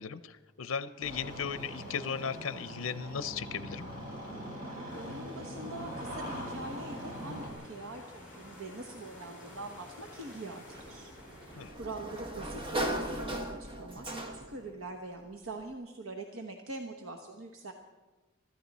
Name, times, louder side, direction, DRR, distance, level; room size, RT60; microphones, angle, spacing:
voice 1, 0.0-3.9 11.6-11.7, left 6 dB, 80° left, 14 dB, 0.5 m, -36 dB
Engine starting, 1.0-7.5, equal, 40° right, 4.2 m, -42 dB
voice 2, 4.7-11.1 11.4-17.7, right 2 dB, 85° right, 4 dB, 1.1 m, -44 dB
sound 1, 4.9-11.7, left 1 dB, 5° right, 6.0 m, -51 dB
Sliding door, 10.7-14.7, right 1 dB, 25° right, 1.1 m, -37 dB
24.5 x 14.0 x 4.1 m, 1.2 s
head